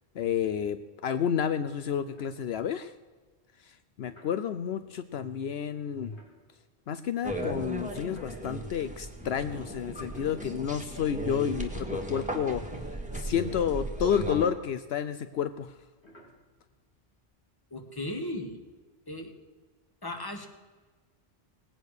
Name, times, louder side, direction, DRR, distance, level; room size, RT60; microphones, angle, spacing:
voice 1, 0.1-0.8 1.0-2.9 3.6-6.2 6.9-12.6 13.1-15.7, left 8 dB, 75° left, 12 dB, 0.9 m, -30 dB
sound 1, 2.1-2.9 4.0-4.4 6.0-8.8 9.4-11.2 11.8-17.2, equal, 90° left, 3.8 m, -59 dB
sound 2, 7.2-14.5, right 1 dB, 5° right, 1.7 m, -36 dB
voice 2, 17.7-18.6 19.1-19.4 20.0-20.5, left 1 dB, 20° left, 5 dB, 1.7 m, -36 dB
19.0 x 8.9 x 6.5 m, 1.4 s
omnidirectional pair, 1.1 m